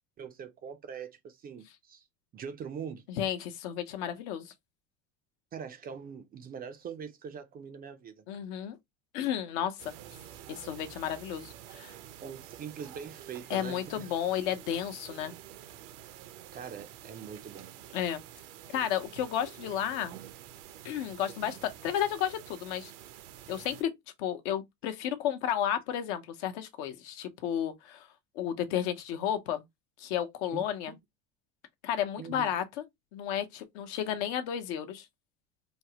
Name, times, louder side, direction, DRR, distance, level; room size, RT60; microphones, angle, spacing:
voice 1, 0.2-2.1 2.3-3.0 5.5-8.1 12.2-14.1 16.5-17.7 21.5-21.6 30.5-31.0 32.2-32.5, right 7 dB, 25° right, 0.4 m, -42 dB
voice 2, 3.1-4.5 8.3-8.8 9.1-9.9 10.5-12.0 13.5-15.3 17.9-18.2 18.7-20.2 20.8-22.9 23.5-23.9 24.2-28.1 28.4-29.6 30.0-30.9 31.8-32.8 33.1-35.1, left 10 dB, 70° left, 0.8 m, -32 dB
sound 1, 9.8-23.8, right 12 dB, 75° right, 0.7 m, -49 dB
3.4 x 2.0 x 2.7 m
supercardioid pair, 115°, 36 cm